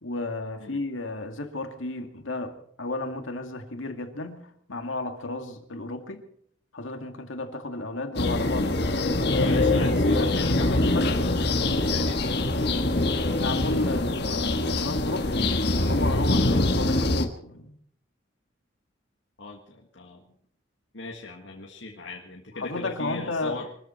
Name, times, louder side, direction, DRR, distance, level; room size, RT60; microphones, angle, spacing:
voice 1, 0.0-6.2 6.7-9.9 10.1-11.1 13.3-17.8 22.6-23.6, left 2 dB, 90° left, 5 dB, 2.2 m, -33 dB
sound 1, 8.1-17.2, left 2 dB, 55° left, 1.5 m, -24 dB
voice 2, 9.4-13.4 19.4-20.2 20.9-23.7, left 3 dB, 75° left, -1 dB, 1.8 m, -39 dB
23.5 x 13.5 x 4.5 m, 0.64 s
head